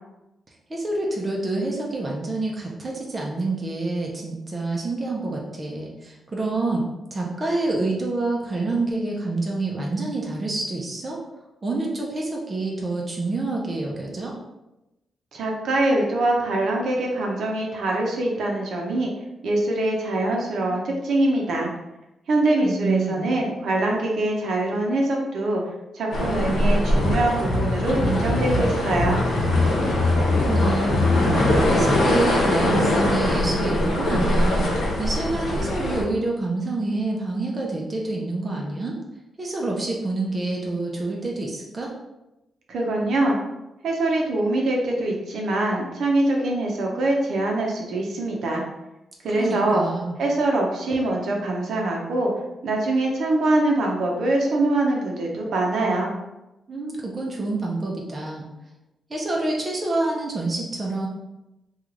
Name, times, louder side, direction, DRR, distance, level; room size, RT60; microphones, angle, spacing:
voice 1, 0.7-6.8 7.1-11.2 11.6-14.3 22.6-23.3 30.1-31.1 31.7-34.7 35.0-39.0 39.4-41.9 49.4-50.1 56.7-58.5 59.1-61.1, right 2 dB, 25° right, -2 dB, 0.6 m, -27 dB
voice 2, 15.3-19.1 19.4-21.7 22.3-25.6 25.9-29.2 42.7-43.4 43.8-48.6 49.2-49.8 50.2-52.3 52.6-56.1, right 2 dB, 70° right, -1 dB, 0.7 m, -23 dB
sound 1, 26.1-36.0, left 1 dB, 85° left, 0.9 m, -23 dB
sound 2, 26.9-28.7 28.9-32.0, left 2 dB, 15° left, 0.8 m, -23 dB
3.2 x 2.4 x 3.7 m, 0.96 s
wide cardioid pair, 140°, 0 cm